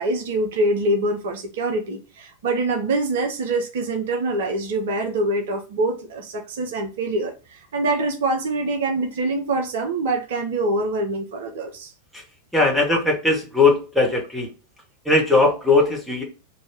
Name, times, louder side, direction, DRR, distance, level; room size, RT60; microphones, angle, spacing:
voice 1, 0.0-11.9 12.9-13.0, right 2 dB, 55° right, 0.7 m, -25 dB
voice 2, 12.5-14.5 15.0-16.2, left 3 dB, ahead, 1.3 m, -19 dB
3.0 x 2.7 x 4.4 m
figure-of-eight pair, 90°, 0 cm